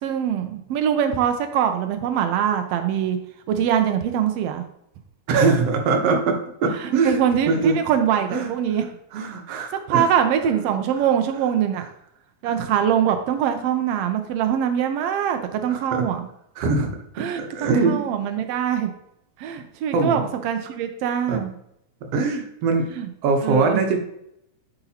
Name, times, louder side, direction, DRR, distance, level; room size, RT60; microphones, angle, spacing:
voice 1, 0.0-3.2 3.5-4.6 6.8-8.8 9.5-9.6 9.9-11.9 12.4-16.2 17.2-18.9 19.4-21.5 23.0-23.1 23.4-23.9, right 9 dB, 85° right, 7 dB, 1.3 m, -23 dB
voice 2, 5.3-7.2 7.5-7.8 8.3-8.5 9.1-10.1 12.4-12.6 15.7-16.1 16.6-16.9 17.2-18.1 19.9-20.2 21.3-21.4 22.0-22.9 23.2-24.0, right 4 dB, 65° right, 4 dB, 1.7 m, -22 dB
9.8 x 3.9 x 2.8 m, 0.76 s
omnidirectional pair, 3.4 m